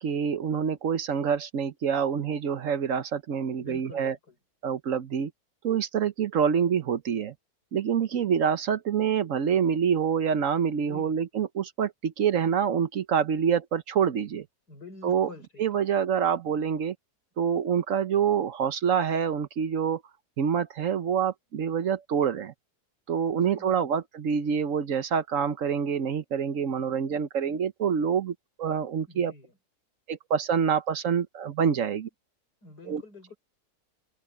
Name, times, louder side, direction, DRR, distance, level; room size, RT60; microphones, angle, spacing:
voice 1, 0.0-4.1 4.6-5.3 5.6-7.3 7.7-14.5 15.0-15.3 15.6-16.9 17.4-20.0 20.4-22.5 23.1-29.3 30.1-32.1 32.9-33.0, right 7 dB, 60° right, 1.1 m, -26 dB
voice 2, 3.6-4.4 10.8-11.2 14.7-16.0 23.3-24.0 29.1-29.6 32.6-33.4, left 3 dB, 90° left, 7.0 m, -48 dB
omnidirectional pair, 1.7 m